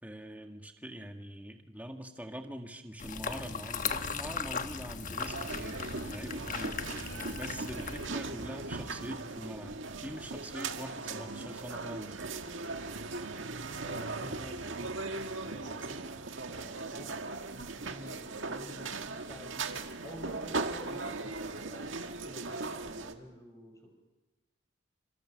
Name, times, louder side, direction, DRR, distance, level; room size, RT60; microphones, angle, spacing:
voice 1, 0.0-6.8 7.4-12.2, equal, 10° right, 4 dB, 1.9 m, -44 dB
sound 1, 3.0-8.1, left 5 dB, 40° left, 1.2 m, -37 dB
sound 2, 5.2-23.1, right 3 dB, 70° right, 1.9 m, -39 dB
voice 2, 13.8-16.1 16.4-17.1 17.5-23.9, equal, 15° left, 3 dB, 6.0 m, -50 dB
29.0 x 26.0 x 6.5 m, 1.1 s
head